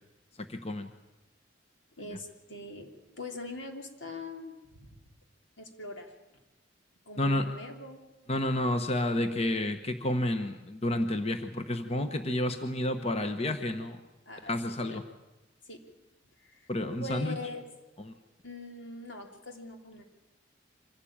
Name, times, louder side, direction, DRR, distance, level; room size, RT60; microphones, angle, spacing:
voice 1, 0.4-0.9 7.2-7.5 8.3-14.0 14.5-15.0 16.7-17.4 18.0-18.1, left 1 dB, 35° left, 8 dB, 1.1 m, -30 dB
voice 2, 2.0-2.9 3.2-5.0 5.6-6.1 7.0-8.0 14.2-15.0 15.7-15.8 16.4-16.7 17.0-17.6 18.4-20.0, left 2 dB, 80° left, 3 dB, 3.3 m, -42 dB
25.0 x 16.5 x 8.8 m, 1.1 s
head